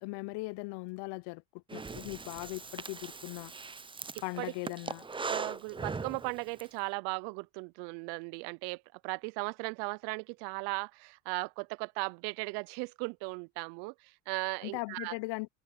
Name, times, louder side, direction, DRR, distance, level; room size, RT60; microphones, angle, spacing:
voice 1, 0.0-1.4 1.7-3.5 4.2-5.0 14.6-15.5, left 26 dB, 65° left, 0.9 m, -39 dB
Breathing, 1.7-6.7, right 4 dB, 10° right, 0.7 m, -40 dB
voice 2, 4.1-4.5 5.3-15.1, right 31 dB, 65° right, 0.6 m, -37 dB
supercardioid pair, 90°, 44 cm